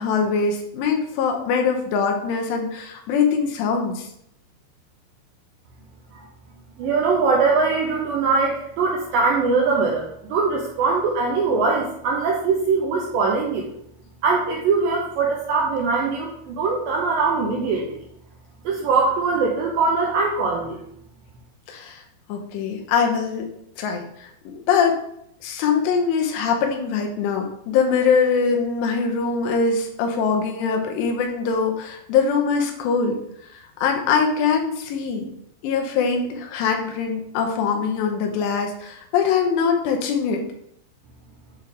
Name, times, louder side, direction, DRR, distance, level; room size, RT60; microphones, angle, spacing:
voice 1, 0.0-4.1 21.7-22.0 22.3-23.5 23.8-25.0 25.4-33.2 33.8-35.3 35.6-40.4, left 5 dB, 85° left, 3 dB, 3.0 m, -22 dB
voice 2, 6.8-13.7 14.2-18.0 18.7-20.8, right 4 dB, 85° right, -1 dB, 2.0 m, -22 dB
8.5 x 3.4 x 3.5 m, 0.73 s
omnidirectional pair, 4.9 m